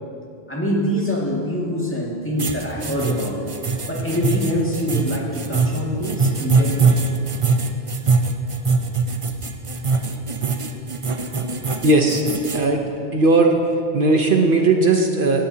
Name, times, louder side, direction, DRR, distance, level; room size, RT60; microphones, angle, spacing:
voice 1, 0.5-3.4 3.9-6.9, equal, 10° left, -4 dB, 2.1 m, -24 dB
sound 1, 2.4-12.6, right 4 dB, 35° right, 0.7 m, -22 dB
voice 2, 11.8-12.2 12.5-12.8 13.1-13.6 13.9-15.5, right 3 dB, 60° right, 3 dB, 1.0 m, -17 dB
17.5 x 16.5 x 2.8 m, 2.6 s
omnidirectional pair, 1.0 m